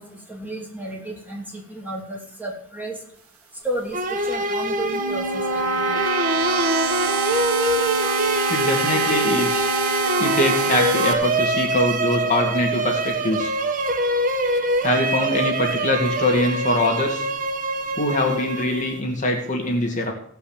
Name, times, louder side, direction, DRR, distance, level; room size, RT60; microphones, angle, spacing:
voice 1, 0.0-3.0 3.6-5.9, right 1 dB, 10° right, -1 dB, 2.8 m, -32 dB
sound 1, 3.9-19.0, right 2 dB, 40° right, 1.2 m, -24 dB
sound 2, 4.6-11.1, right 3 dB, 80° right, 1.4 m, -25 dB
voice 2, 8.5-9.7 10.2-13.5 14.8-17.2 18.0-20.1, left 1 dB, 35° left, 2 dB, 2.2 m, -23 dB
16.5 x 5.7 x 7.4 m, 0.64 s
head